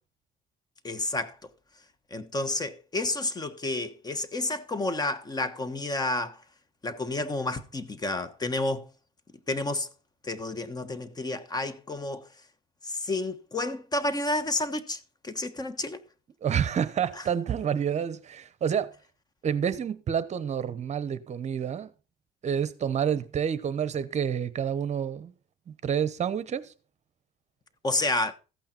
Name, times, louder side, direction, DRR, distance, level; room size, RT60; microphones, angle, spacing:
voice 1, 0.8-1.4 2.1-6.4 6.8-8.9 9.5-9.9 10.2-12.3 12.8-16.0 27.8-28.3, left 2 dB, 25° left, 1.2 m, -30 dB
voice 2, 16.4-18.9 19.4-21.9 22.4-25.3 25.7-26.7, right 8 dB, 40° right, 0.9 m, -28 dB
14.5 x 8.6 x 4.4 m
cardioid pair, 110°, 17 cm